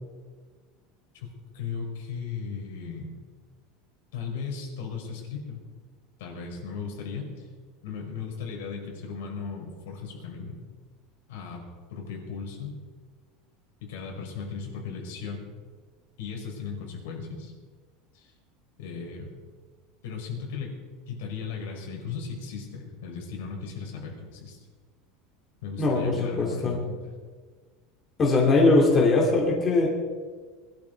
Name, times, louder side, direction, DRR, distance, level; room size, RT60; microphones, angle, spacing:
voice 1, 1.5-3.2 4.1-5.6 6.2-7.5 7.8-10.6 11.3-11.6 11.9-12.7 13.8-15.4 16.2-17.5 18.1-18.3 18.8-19.3 20.0-20.8 21.1-24.6 25.6-27.1, left 5 dB, 80° left, 0 dB, 5.1 m, -36 dB
voice 2, 25.8-26.8 28.2-29.9, left 3 dB, 20° left, -2 dB, 2.7 m, -21 dB
21.5 x 12.0 x 4.7 m, 1.5 s
supercardioid pair, 170°, 0 cm